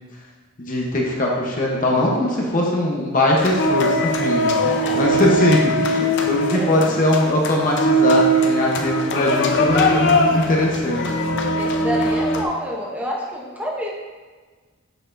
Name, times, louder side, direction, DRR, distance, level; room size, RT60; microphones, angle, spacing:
voice 1, 0.6-11.0, left 1 dB, 45° left, -2 dB, 1.0 m, -21 dB
sound 1, 3.4-12.4, equal, 60° left, 0.6 m, -20 dB
voice 2, 4.6-5.2 6.4-6.9 11.6-13.9, equal, 10° right, -2 dB, 0.8 m, -29 dB
6.7 x 6.0 x 2.6 m, 1.4 s
head